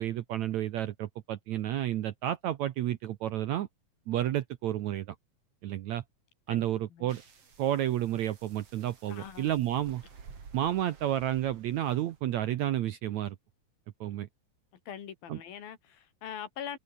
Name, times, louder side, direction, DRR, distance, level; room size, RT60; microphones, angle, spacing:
voice 1, 0.0-3.7 4.1-5.1 5.6-6.0 6.5-7.2 7.6-10.0 10.5-13.3 14.0-14.3 15.3-15.4, right 12 dB, 75° right, 1.7 m, -31 dB
sound 1, 7.1-12.2, right 5 dB, 40° right, 4.1 m, -53 dB
voice 2, 9.1-9.5 14.9-16.8, left 9 dB, 70° left, 4.2 m, -42 dB
omnidirectional pair, 4.3 m